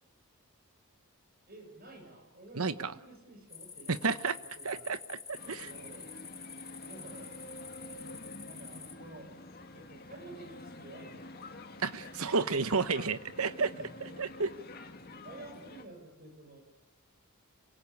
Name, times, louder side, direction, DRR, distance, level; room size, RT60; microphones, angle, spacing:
voice 1, 1.5-4.0 4.3-5.0 5.4-6.1 6.8-7.3 8.4-9.3 9.7-11.4 13.7-14.3 15.2-16.6, right 2 dB, 45° right, 4 dB, 6.7 m, -51 dB
voice 2, 2.6-2.9 3.9-4.4 4.6-5.7 11.8-13.7 14.0-14.5, right 4 dB, 80° right, 13 dB, 1.3 m, -31 dB
sound 1, 3.5-8.9, left 6 dB, 15° left, 1.3 m, -48 dB
sound 2, 5.4-15.8, left 2 dB, 45° left, 2.1 m, -48 dB
27.5 x 23.5 x 8.6 m, 0.94 s
head